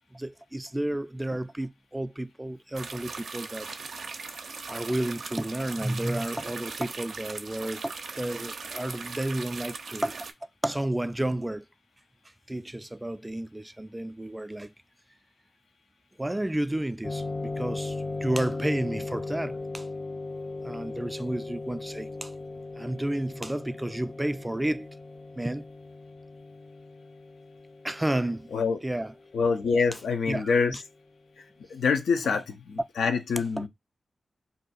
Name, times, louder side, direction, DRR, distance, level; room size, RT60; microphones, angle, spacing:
voice 1, 0.1-3.7 4.7-10.3 10.6-11.6 12.5-14.7 16.2-19.9 20.6-22.3 22.7-24.9 25.4-25.6 27.8-28.5 28.8-29.1 30.3-30.8 33.6-33.7, right 1 dB, 15° right, 0.3 m, -31 dB
sound 1, 2.7-10.3, right 4 dB, 75° right, 0.5 m, -39 dB
sound 2, 17.0-30.2, left 3 dB, 30° left, 0.6 m, -38 dB
voice 2, 29.3-30.8 31.4-31.5 31.7-33.7, left 5 dB, 90° left, 0.5 m, -26 dB
2.6 x 2.3 x 4.1 m
cardioid pair, 45°, 0 cm